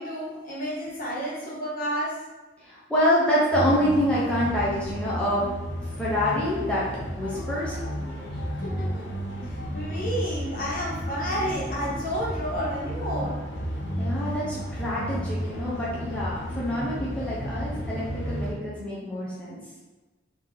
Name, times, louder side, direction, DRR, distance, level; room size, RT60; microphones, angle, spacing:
voice 1, 0.0-2.2 8.6-9.1 9.5-13.4, equal, 50° left, -7 dB, 1.4 m, -31 dB
voice 2, 2.6-5.5 6.0-6.8 7.1-7.9 14.0-19.6, equal, 5° left, -8 dB, 0.7 m, -26 dB
sound 1, 3.5-18.5, equal, 70° left, 0.8 m, -32 dB
3.8 x 2.9 x 3.3 m, 1.2 s
head